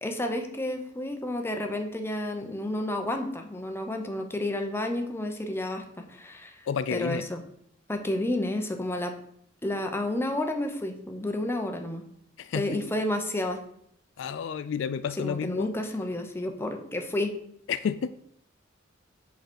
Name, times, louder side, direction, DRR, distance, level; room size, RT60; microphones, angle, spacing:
voice 1, 0.0-6.6 6.9-7.4 7.9-9.1 9.6-12.0 12.5-13.6 15.2-17.3, left 1 dB, 15° left, 4 dB, 0.9 m, -31 dB
voice 2, 6.7-7.3 12.4-12.8 14.2-15.7 17.7-18.1, left 7 dB, 65° left, 14 dB, 0.3 m, -30 dB
7.8 x 4.1 x 6.2 m, 0.68 s
head